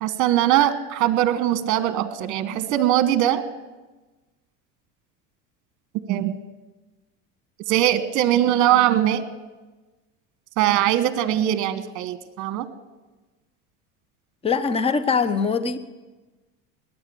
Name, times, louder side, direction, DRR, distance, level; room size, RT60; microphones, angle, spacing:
voice 1, 0.0-3.4 6.1-6.3 7.7-9.2 10.6-12.7, right 12 dB, 50° right, 13 dB, 1.3 m, -21 dB
voice 2, 14.4-15.8, left 5 dB, 15° left, 13 dB, 0.8 m, -22 dB
21.0 x 9.4 x 7.1 m, 1.2 s
supercardioid pair, 115°, 38 cm